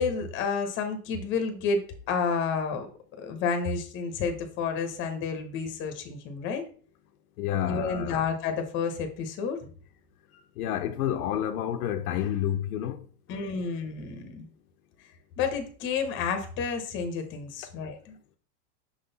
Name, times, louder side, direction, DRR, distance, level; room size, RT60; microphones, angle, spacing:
voice 1, 0.0-1.8 2.1-2.9 3.2-6.6 7.6-9.6 13.3-14.5 15.4-18.2, left 5 dB, 25° left, 0.9 m, -30 dB
voice 2, 7.4-8.3 10.6-13.0, left 10 dB, 70° left, 0.7 m, -29 dB
6.3 x 3.9 x 4.0 m
supercardioid pair, 160°, 46 cm